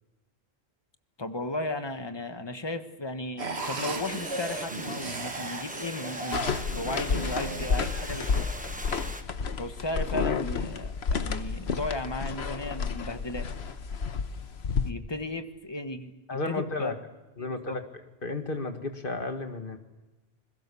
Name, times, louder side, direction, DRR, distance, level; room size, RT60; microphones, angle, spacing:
voice 1, 1.2-8.5 9.6-13.5 14.8-16.1 16.5-17.0 17.4-17.8, left 2 dB, 25° left, 8 dB, 1.4 m, -35 dB
sound 1, 3.4-8.8, right 3 dB, 80° right, 1.9 m, -37 dB
sound 2, 3.5-9.2, right 1 dB, 10° right, 1.3 m, -41 dB
sound 3, 6.3-14.9, left 5 dB, 80° left, 1.3 m, -31 dB
voice 2, 16.3-17.0 17.4-17.8 18.2-19.8, left 2 dB, 55° left, 6 dB, 2.1 m, -33 dB
28.0 x 21.0 x 7.0 m, 1.1 s
omnidirectional pair, 1.1 m